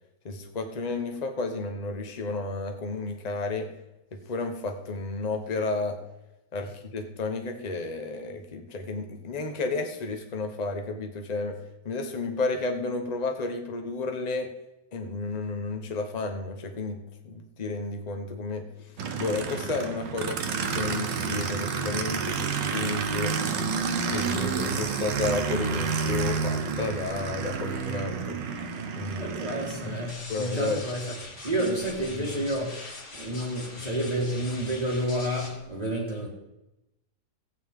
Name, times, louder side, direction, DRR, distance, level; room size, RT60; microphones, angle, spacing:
voice 1, 0.2-3.7 4.1-6.0 6.5-11.6 11.8-14.5 14.9-17.0 17.2-23.3 24.1-28.4 29.0-29.4 29.8-30.0 30.3-30.8 31.6-31.7 32.1-32.4, left 3 dB, 30° left, 1.0 m, -32 dB
Aircraft, 19.0-30.1, right 5 dB, 85° right, 1.6 m, -30 dB
voice 2, 29.2-31.1 31.4-32.7 33.2-36.3, right 1 dB, 25° right, 1.6 m, -30 dB
sound 1, 30.1-35.5, left 2 dB, 60° left, 2.8 m, -42 dB
15.5 x 8.6 x 3.7 m
omnidirectional pair, 1.9 m